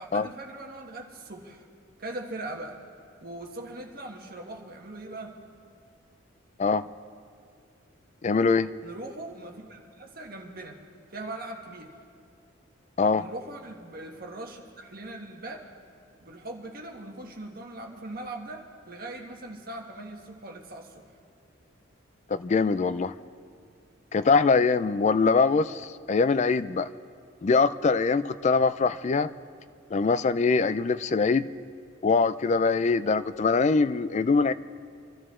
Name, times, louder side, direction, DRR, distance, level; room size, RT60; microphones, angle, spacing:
voice 1, 0.0-1.6 2.0-2.8 3.2-5.3 8.8-10.8 11.1-11.9 13.1-15.7 16.2-21.0, right 2 dB, 45° right, 1 dB, 1.4 m, -40 dB
voice 2, 8.2-8.7 13.0-13.3 22.3-23.1 24.1-26.9 27.4-29.3 29.9-31.5 32.0-34.5, left 4 dB, 35° left, 14 dB, 0.3 m, -23 dB
25.0 x 13.0 x 3.7 m, 2.3 s
head